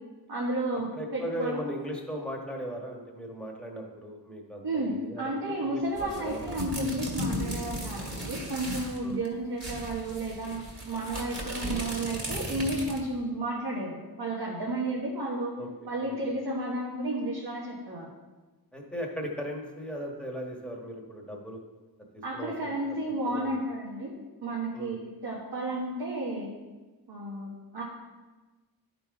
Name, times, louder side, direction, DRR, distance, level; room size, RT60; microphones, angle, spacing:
voice 1, 0.3-1.6 4.6-15.5 15.9-18.1 22.2-26.5 27.1-27.8, right 1 dB, 70° right, -5 dB, 1.5 m, -32 dB
voice 2, 0.9-6.5 9.0-9.2 15.6-16.2 18.7-21.6 22.3-22.7 23.3-23.5 24.7-25.0, equal, 5° left, -1 dB, 1.4 m, -38 dB
sound 1, 6.0-9.0 9.2-9.3 9.6-13.1, equal, 40° right, 2.1 m, -36 dB
11.0 x 3.9 x 4.8 m, 1.2 s
wide cardioid pair, 85°, 39 cm